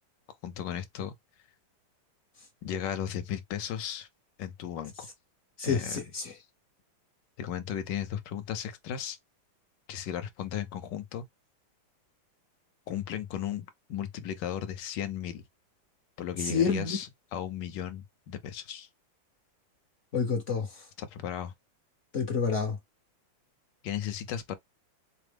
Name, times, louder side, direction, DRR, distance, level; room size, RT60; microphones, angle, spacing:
voice 1, 0.4-1.1 2.6-4.1 4.4-5.1 5.6-6.0 7.4-9.2 9.9-11.3 12.9-15.4 16.2-18.9 21.0-21.5 23.8-24.5, left 10 dB, 70° left, 1.2 m, -35 dB
voice 2, 5.6-6.3 16.4-17.0 20.1-20.9 22.1-22.8, left 5 dB, 55° left, 0.9 m, -28 dB
4.8 x 2.0 x 3.3 m
omnidirectional pair, 2.2 m